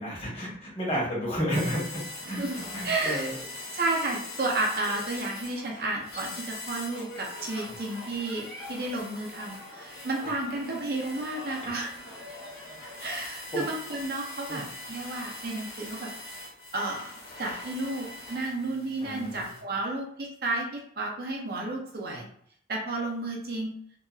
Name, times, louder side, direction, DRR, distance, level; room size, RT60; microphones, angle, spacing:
voice 1, 0.0-1.8 2.1-2.4 2.7-3.3 11.6-11.7 13.5-13.6 14.5-14.6 19.0-19.4, equal, 30° left, -6 dB, 1.2 m, -31 dB
sound 1, 1.5-19.6, left 2 dB, 55° left, 1.3 m, -43 dB
sound 2, 1.6-13.2, left 1 dB, 75° left, 0.9 m, -47 dB
voice 2, 2.3-3.3 3.7-11.9 13.0-16.1 16.7-22.3 22.7-23.7, right 2 dB, 55° right, -1 dB, 0.6 m, -32 dB
2.7 x 2.5 x 2.4 m, 0.64 s
head